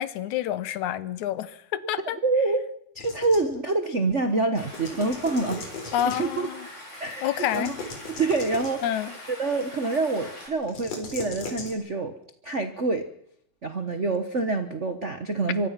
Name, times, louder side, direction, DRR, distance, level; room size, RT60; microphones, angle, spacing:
voice 1, 0.0-2.2 5.9-6.7 7.2-7.7 8.8-9.1, left 11 dB, 75° left, 15 dB, 2.4 m, -28 dB
voice 2, 2.2-2.7 2.9-5.6 6.0-6.5 7.0-7.7 8.2-8.8 9.4-12.1 12.4-13.1 13.6-15.7, right 3 dB, 75° right, 9 dB, 0.6 m, -26 dB
sound 1, 3.0-3.6 4.6-6.5 7.3-8.9 10.6-11.7, left 3 dB, 55° left, 4.9 m, -38 dB
Stream, 4.6-10.5, left 1 dB, 20° left, 7.1 m, -43 dB
24.0 x 24.0 x 5.9 m, 0.73 s
omnidirectional pair, 3.5 m